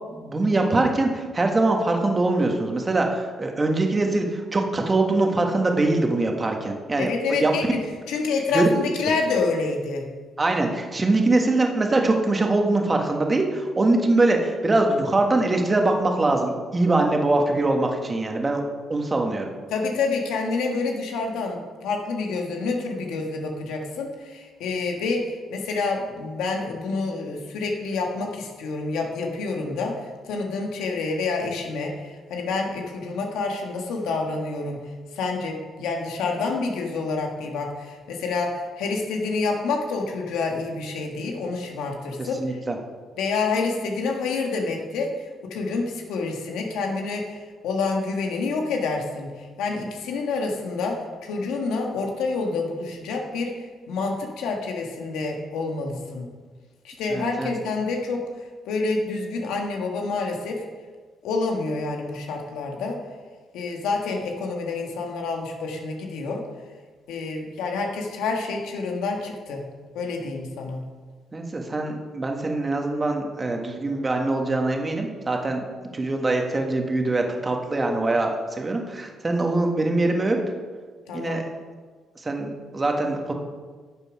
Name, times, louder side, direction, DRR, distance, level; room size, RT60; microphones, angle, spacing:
voice 1, 0.1-7.5 8.5-8.7 10.4-18.6 18.9-19.5 42.2-42.8 57.1-57.5 71.3-75.6 75.9-80.4 81.1-81.4 82.2-83.3, right 2 dB, 25° right, 2 dB, 1.6 m, -23 dB
voice 2, 7.0-7.6 8.1-10.1 19.7-34.8 35.1-42.4 43.2-56.3 56.8-58.2 58.6-60.6 61.2-63.0 63.5-66.4 67.1-69.7 69.9-70.9 81.1-81.4, left 3 dB, 90° left, 2 dB, 1.5 m, -28 dB
11.5 x 6.8 x 4.9 m, 1.5 s
cardioid pair, 90°, 0 cm